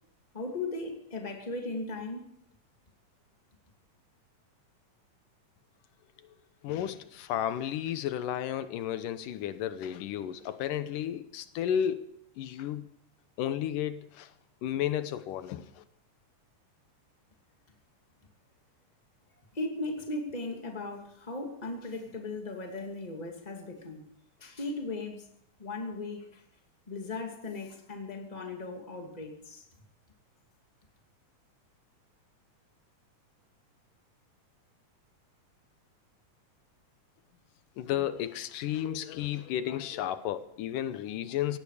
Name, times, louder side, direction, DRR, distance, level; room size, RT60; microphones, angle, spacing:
voice 1, 0.3-2.3 19.5-24.0 24.4-25.3 25.6-26.4 26.9-29.6, left 2 dB, 15° left, 2.2 m, -37 dB
voice 2, 6.6-12.1 12.4-12.9 13.4-14.3 14.6-15.8 37.8-41.6, left 10 dB, 85° left, 2.6 m, -33 dB
17.5 x 16.5 x 5.0 m
omnidirectional pair, 3.7 m